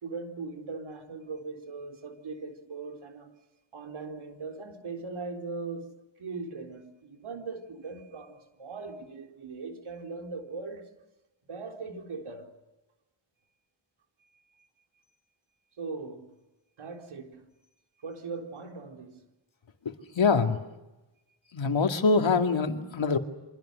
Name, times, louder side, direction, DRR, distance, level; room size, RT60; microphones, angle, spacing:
voice 1, 0.0-3.3 3.7-10.9 11.5-12.5 14.2-14.7 15.8-16.3 16.8-17.4 18.0-19.2, right 4 dB, 85° right, 4.0 m, -40 dB
voice 2, 19.9-20.6 21.5-23.2, left 4 dB, 70° left, 2.5 m, -24 dB
28.5 x 25.5 x 6.5 m
cardioid pair, 75°, 47 cm